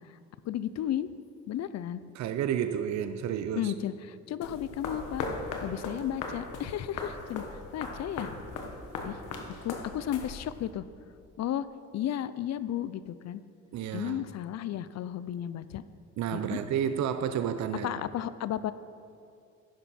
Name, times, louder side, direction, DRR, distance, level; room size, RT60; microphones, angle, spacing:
voice 1, 0.4-1.1 1.5-2.0 3.6-5.3 5.6-8.3 9.0-9.2 9.6-10.8 11.4-11.7 11.9-13.4 13.9-15.8 16.3-16.6 17.8-18.7, left 11 dB, 60° left, 15 dB, 0.5 m, -33 dB
voice 2, 2.1-3.7 13.7-14.3 16.2-17.9, right 9 dB, 65° right, 10 dB, 0.6 m, -31 dB
sound 1, 4.4-10.7, left 4 dB, 90° left, 1.3 m, -38 dB
11.5 x 10.5 x 4.3 m, 2.5 s
cardioid pair, 90°, 30 cm